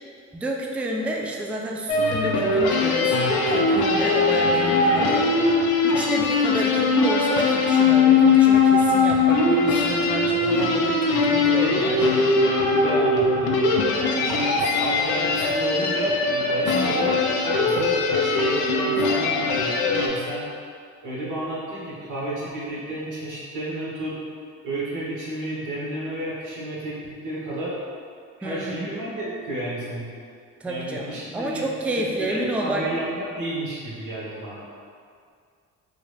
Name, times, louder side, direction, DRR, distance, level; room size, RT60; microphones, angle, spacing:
voice 1, 0.3-5.3 5.8-12.2 16.7-17.1 28.4-28.9 30.6-32.8, right 1 dB, 5° right, 0 dB, 0.3 m, -30 dB
sound 1, 1.9-20.1, left 3 dB, 80° left, 0.5 m, -20 dB
voice 2, 10.3-10.7 11.1-13.7 14.1-20.4 21.0-24.1 24.6-27.7 28.4-30.1 30.6-31.6 32.0-34.6, right 1 dB, 55° right, -8 dB, 1.3 m, -32 dB
3.8 x 2.1 x 3.3 m, 2.2 s
supercardioid pair, 65°, 36 cm